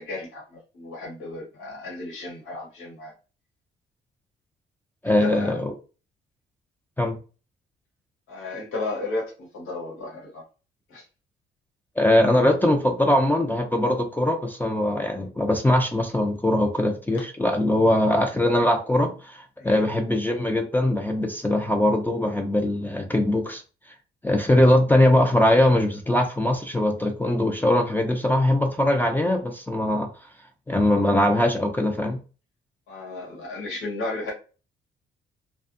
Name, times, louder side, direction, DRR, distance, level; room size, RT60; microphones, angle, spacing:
voice 1, 0.0-3.1 5.0-5.6 8.3-10.4 10.9-11.0 17.5-17.8 19.6-19.8 32.9-34.3, left 2 dB, 90° left, 1.4 m, -34 dB
voice 2, 5.0-5.7 7.0-7.2 12.0-23.6 24.2-30.1 30.7-32.2, left 1 dB, 10° left, 0.4 m, -21 dB
2.5 x 2.3 x 2.5 m
cardioid pair, 90°, 20 cm